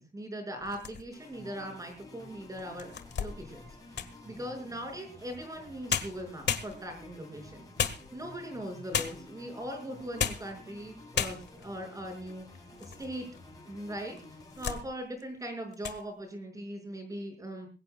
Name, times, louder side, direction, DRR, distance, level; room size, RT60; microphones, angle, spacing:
voice 1, 0.0-2.9 3.2-3.7 4.3-7.7 8.1-12.5 12.8-13.3 13.7-14.2 14.6-17.7, equal, 20° right, 4 dB, 5.7 m, -40 dB
sound 1, 0.6-1.3 1.9-2.0 2.6-4.3 5.5-5.6 5.9-7.1 7.8-8.5 8.9-9.4 10.0-10.6 10.8-10.9 11.1-11.7 12.3-13.1 13.4-13.5 14.2-14.9 15.2-15.4 15.7-16.0, left 7 dB, 80° left, 1.6 m, -34 dB
sound 2, 1.1-14.8, left 2 dB, 20° left, 7.9 m, -51 dB
21.5 x 17.5 x 2.3 m, 0.34 s
wide cardioid pair, 175°, 17 cm